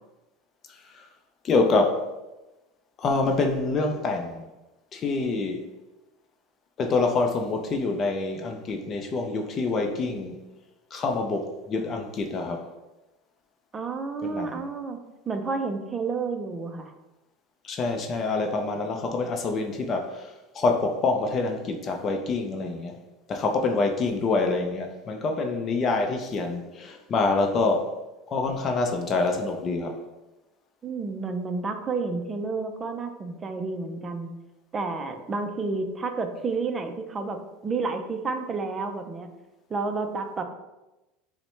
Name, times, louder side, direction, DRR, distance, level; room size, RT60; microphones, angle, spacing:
voice 1, 0.7-1.1 1.4-2.0 3.0-4.4 4.9-5.6 6.8-10.4 10.9-12.6 14.2-14.6 17.6-23.0 23.3-27.9 28.3-30.0, left 3 dB, 35° left, 4 dB, 0.5 m, -26 dB
voice 2, 13.7-15.0 15.3-16.9 30.8-34.3 34.7-39.3 39.7-40.4, right 4 dB, 25° right, 6 dB, 0.5 m, -30 dB
5.3 x 2.1 x 3.1 m, 1.0 s
supercardioid pair, 120°, 0 cm